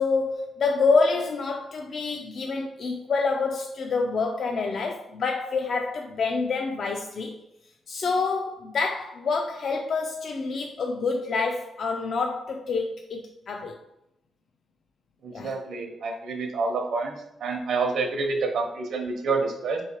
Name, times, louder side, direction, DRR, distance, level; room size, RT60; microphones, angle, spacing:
voice 1, 0.0-7.3 7.9-13.8 15.3-15.6, left 4 dB, 55° left, 0.3 m, -27 dB
voice 2, 15.2-19.8, right 4 dB, 70° right, 0.8 m, -28 dB
3.5 x 3.1 x 4.4 m
wide cardioid pair, 140°, 0 cm